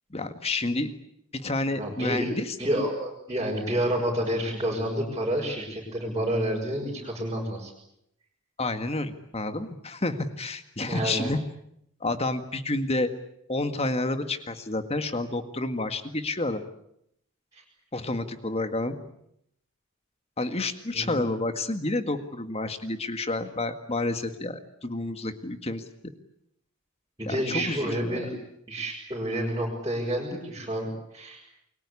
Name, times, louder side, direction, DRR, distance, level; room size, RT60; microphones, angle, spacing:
voice 1, 0.1-0.9 1.3-2.6 8.6-11.4 12.0-13.1 13.5-16.6 17.9-19.0 20.4-25.8 27.2-28.3, left 2 dB, 25° left, 9 dB, 1.9 m, -29 dB
voice 2, 1.8-2.3 2.6-7.7 10.9-11.3 17.5-17.6 20.9-21.2 27.2-28.3 28.7-30.9 31.1-31.4, right 1 dB, 15° right, -6 dB, 6.1 m, -29 dB
29.0 x 22.5 x 8.5 m, 0.76 s
head